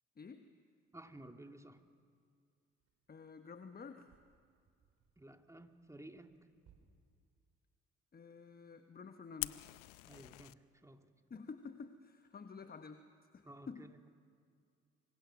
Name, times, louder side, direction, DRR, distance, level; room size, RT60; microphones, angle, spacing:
voice 1, 0.2-0.5 3.1-4.1 8.1-9.8 11.3-13.0 13.3-13.9, left 5 dB, 25° left, 8 dB, 1.2 m, -50 dB
voice 2, 0.9-1.8 5.2-6.3 10.0-11.1 13.4-14.1, right 1 dB, 10° right, 5 dB, 2.2 m, -54 dB
sound 1, 1.8-1.9 2.7-6.8, right 8 dB, 55° right, 4.0 m, -72 dB
Fire, 9.4-10.5, left 24 dB, 70° left, 0.6 m, -43 dB
25.5 x 25.0 x 6.1 m, 2.2 s
figure-of-eight pair, 45°, 34 cm